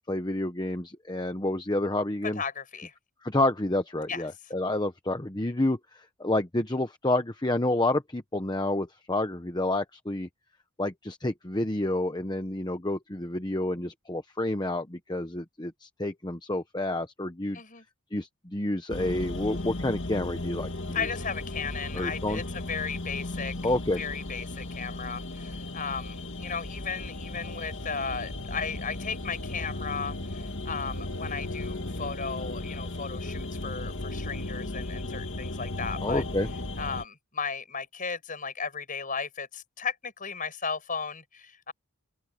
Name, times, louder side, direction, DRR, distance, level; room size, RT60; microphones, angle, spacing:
voice 1, 0.1-2.4 3.2-10.3 10.8-17.6 18.1-20.7 21.9-22.4 23.6-24.0 36.0-36.5, left 1 dB, 20° left, 1.0 m, -29 dB
voice 2, 2.4-2.9 4.1-4.2 17.5-17.8 20.9-23.5 24.0-36.2 36.8-41.7, left 5 dB, 35° left, 6.8 m, -35 dB
sound 1, 18.9-37.0, left 2 dB, 55° left, 2.0 m, -36 dB
open air
head